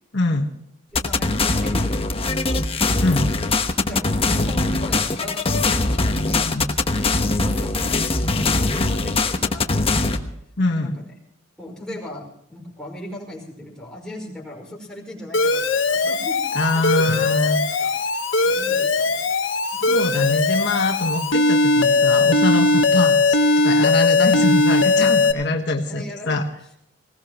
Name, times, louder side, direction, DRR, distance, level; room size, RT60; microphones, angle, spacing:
voice 1, 0.1-0.5 3.0-3.3 6.5-6.7 10.6-11.0 16.5-17.9 19.9-23.4 23.6-26.4, left 2 dB, 65° left, 3 dB, 1.4 m, -23 dB
sound 1, 0.9-10.2, left 3 dB, 30° left, 1.1 m, -21 dB
voice 2, 0.9-3.2 3.8-6.5 7.0-10.3 10.8-11.1 11.6-17.3 17.5-19.3 19.6-20.0 25.9-26.4, left 1 dB, 5° left, -3 dB, 5.1 m, -38 dB
Alarm, 15.3-25.3, left 3 dB, 90° left, 1.3 m, -19 dB
20.0 x 18.0 x 3.0 m, 0.79 s
head